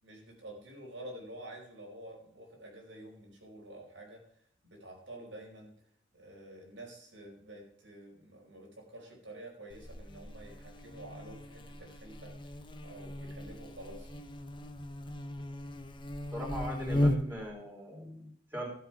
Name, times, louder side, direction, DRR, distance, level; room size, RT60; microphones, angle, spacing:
voice 1, 0.0-4.2 4.6-5.7 6.1-12.6 12.8-14.1, right 1 dB, 80° right, 0 dB, 4.8 m, -49 dB
Buzz, 9.7-17.5, left 1 dB, 25° left, 0.9 m, -36 dB
voice 2, 16.3-18.7, equal, 10° right, -1 dB, 3.9 m, -40 dB
13.5 x 7.9 x 4.7 m, 0.68 s
head